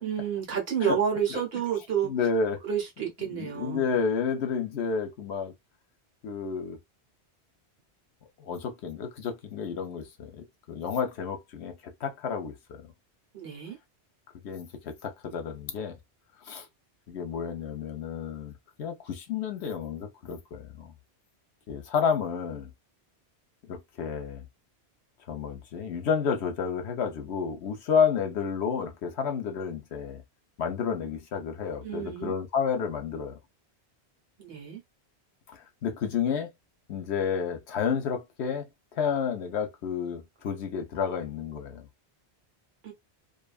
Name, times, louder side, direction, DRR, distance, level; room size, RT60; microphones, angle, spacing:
voice 1, 0.0-2.1 2.6-4.0 13.3-13.8 31.8-32.3 34.4-34.8 42.8-42.9, right 8 dB, 65° right, 1.1 m, -30 dB
voice 2, 2.0-2.6 3.3-5.5 6.2-6.8 8.4-11.7 12.0-12.8 14.4-15.9 16.5-16.7 17.1-18.5 18.8-20.9 21.7-22.7 23.7-24.4 25.3-30.2 30.6-33.4 35.8-36.5 36.9-38.6 39.0-41.9, left 6 dB, 80° left, 1.0 m, -30 dB
2.6 x 2.4 x 2.3 m
omnidirectional pair, 1.1 m